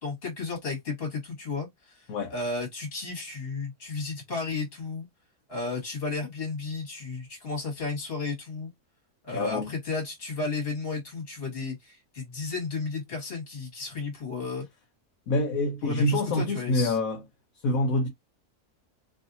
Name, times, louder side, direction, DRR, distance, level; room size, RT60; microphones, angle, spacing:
voice 1, 0.0-5.1 5.5-8.7 9.2-14.7 15.8-17.0, left 4 dB, 40° left, 1.8 m, -33 dB
voice 2, 9.3-9.7 15.3-17.2 17.6-18.1, left 1 dB, 65° left, 1.1 m, -26 dB
3.2 x 2.7 x 2.6 m
omnidirectional pair, 1.7 m